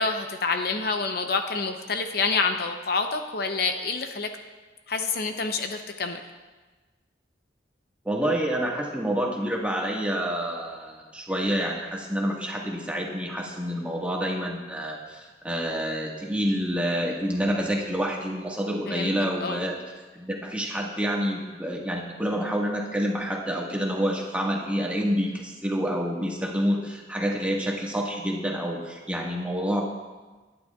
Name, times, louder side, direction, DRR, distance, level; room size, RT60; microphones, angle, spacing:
voice 1, 0.0-4.3 4.9-6.2 18.9-19.1 19.4-19.6, left 4 dB, 55° left, 6 dB, 0.7 m, -27 dB
voice 2, 8.0-19.8 20.1-29.8, equal, 5° right, -2 dB, 1.5 m, -28 dB
21.0 x 10.5 x 2.4 m, 1.3 s
head